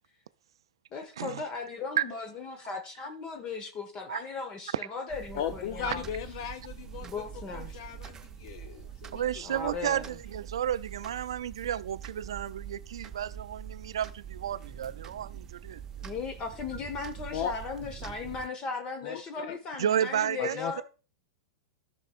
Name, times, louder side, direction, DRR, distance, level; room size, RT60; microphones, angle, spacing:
voice 1, 0.9-6.0 7.0-7.8 9.4-10.1 16.0-20.8, left 4 dB, 35° left, 1.1 m, -37 dB
sound 1, 5.1-18.5, right 8 dB, 20° right, 0.6 m, -44 dB
voice 2, 5.3-7.1 7.5-9.4 17.3-17.5 19.0-19.6 20.4-20.8, left 9 dB, 60° left, 0.5 m, -37 dB
voice 3, 9.1-15.8 19.8-20.8, right 10 dB, 75° right, 0.3 m, -32 dB
13.5 x 5.9 x 2.4 m
hypercardioid pair, 105°, 3 cm